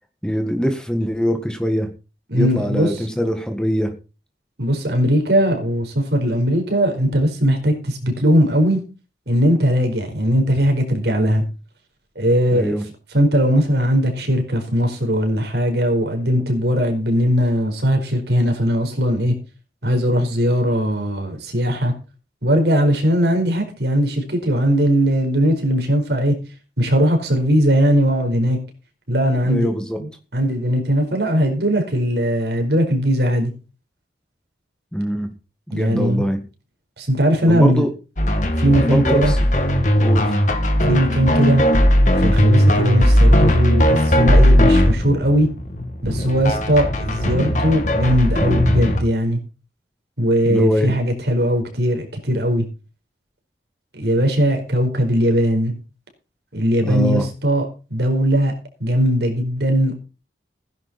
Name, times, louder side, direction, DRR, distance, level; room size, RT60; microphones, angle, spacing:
voice 1, 0.2-1.9 2.3-3.9 12.5-12.8 29.5-30.0 34.9-35.3 35.7-36.4 37.5-37.9 38.8-39.4 40.0-40.4 50.5-50.9 56.8-57.3, equal, 5° left, 1.8 m, -22 dB
voice 2, 2.3-2.9 4.6-8.8 9.3-11.4 12.1-12.7 13.1-19.3 19.8-21.9 22.4-26.3 26.8-28.6 29.1-29.7 30.3-33.5 35.7-36.2 37.0-37.9 38.6-39.3 40.8-41.6 42.2-45.5 46.0-49.4 50.2-52.7 53.9-55.7 56.5-58.5 58.8-60.0, equal, 65° right, 4.7 m, -19 dB
sound 1, 38.2-49.0, equal, 45° left, 2.4 m, -17 dB
16.5 x 10.5 x 4.3 m
head